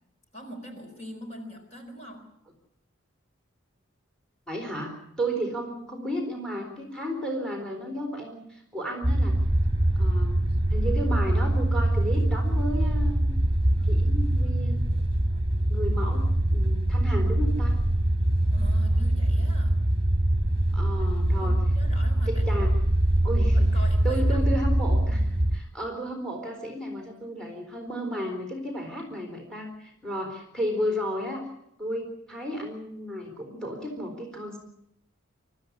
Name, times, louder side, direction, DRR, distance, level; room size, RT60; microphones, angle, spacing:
voice 1, 0.3-2.3 18.5-19.8 21.4-22.6 23.5-24.4, equal, 35° left, 3 dB, 4.4 m, -43 dB
voice 2, 4.5-9.4 10.0-13.3 13.8-14.9 15.7-17.8 20.7-21.6 22.3-22.7 23.2-23.7 24.0-31.4 31.8-34.6, equal, 5° left, 2 dB, 4.0 m, -33 dB
sound 1, 9.0-25.6, right 1 dB, 30° right, 1.8 m, -23 dB
24.5 x 13.5 x 9.8 m, 0.76 s
head